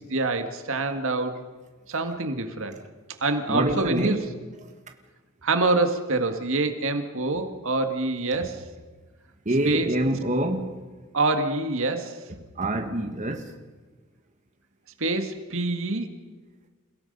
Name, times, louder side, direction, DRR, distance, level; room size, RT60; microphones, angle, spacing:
voice 1, 0.1-1.4 1.9-2.8 3.2-4.2 5.4-8.6 9.7-9.9 11.1-12.2 15.0-16.1, right 2 dB, 65° right, 1.8 m, -26 dB
voice 2, 3.5-4.3 9.4-10.9 12.5-13.6, right 1 dB, 35° right, 1.7 m, -26 dB
28.5 x 17.5 x 5.5 m
head